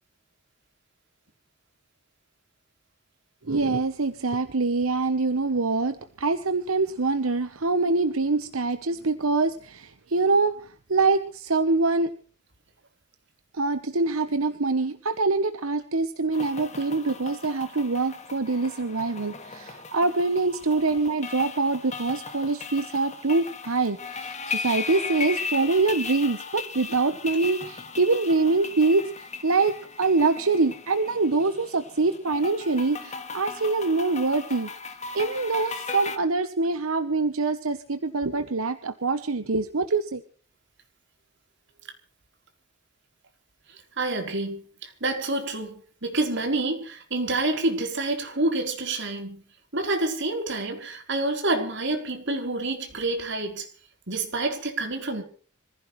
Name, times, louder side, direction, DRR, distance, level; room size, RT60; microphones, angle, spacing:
voice 1, 3.4-12.1 13.5-29.1 29.4-34.7 35.1-40.2, right 3 dB, 85° right, 1.1 m, -25 dB
sound 1, 16.3-36.2, left 5 dB, 35° left, 2.1 m, -37 dB
voice 2, 43.7-49.4 49.7-53.7 54.1-55.2, right 2 dB, 60° right, 4.1 m, -28 dB
26.0 x 15.5 x 3.3 m
head